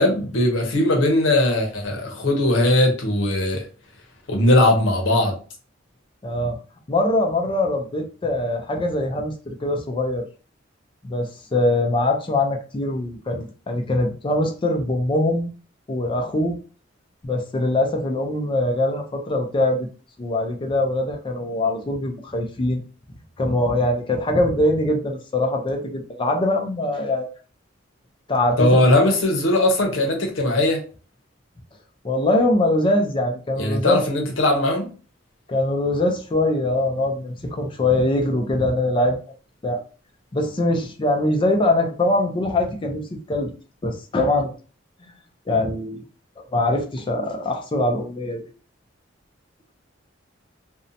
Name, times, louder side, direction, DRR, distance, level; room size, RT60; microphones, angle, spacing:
voice 1, 0.0-3.7 4.3-5.3 28.6-30.8 33.6-34.9, left 1 dB, 80° left, 0.7 m, -19 dB
voice 2, 6.2-6.6 6.9-10.3 11.0-15.5 15.9-16.6 17.2-19.9 20.2-22.8 23.4-27.3 28.3-28.8 32.0-34.3 35.5-39.2 39.6-39.8 40.3-43.5 43.8-44.5 45.5-46.0 46.4-48.5, left 1 dB, 25° left, 0.4 m, -22 dB
2.6 x 2.1 x 2.5 m
head